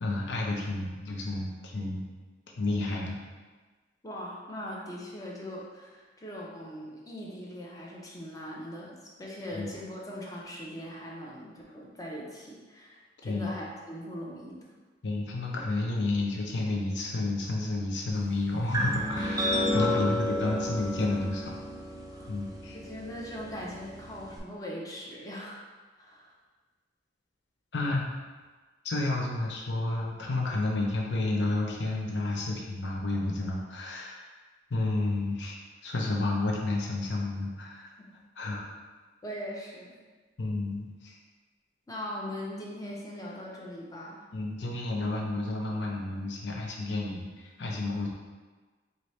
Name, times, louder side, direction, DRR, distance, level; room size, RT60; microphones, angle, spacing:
voice 1, 0.0-2.0 2.6-3.2 9.5-9.7 13.2-13.5 15.0-21.5 22.3-22.8 27.7-28.1 28.8-34.3 34.7-37.9 38.4-38.6 40.4-41.1 44.3-47.3 47.6-48.1, left 2 dB, 65° left, -1 dB, 0.7 m, -31 dB
voice 2, 4.0-14.6 19.7-20.1 20.4-20.7 22.1-22.3 22.8-25.6 26.0-26.4 39.2-40.0 41.9-44.2, equal, 20° left, -3 dB, 0.6 m, -40 dB
sound 1, 18.7-24.4, left 1 dB, 20° right, 0.4 m, -32 dB
4.6 x 2.7 x 3.2 m, 1.3 s
head